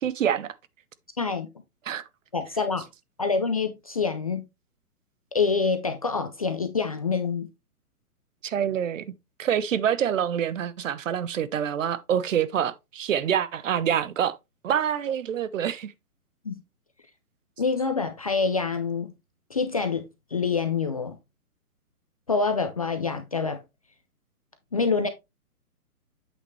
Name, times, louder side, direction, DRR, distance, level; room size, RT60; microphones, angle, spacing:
voice 1, 0.0-0.5 1.9-2.0 8.4-14.4 14.6-15.9, right 9 dB, 55° right, 0.8 m, -26 dB
voice 2, 1.2-1.5 2.3-2.9 3.2-4.5 5.3-7.5 16.4-16.6 17.6-19.1 19.5-20.1 20.3-21.2 22.3-23.6 24.7-25.1, left 4 dB, 25° left, 0.5 m, -26 dB
8.2 x 5.9 x 3.2 m
hypercardioid pair, 150°, 46 cm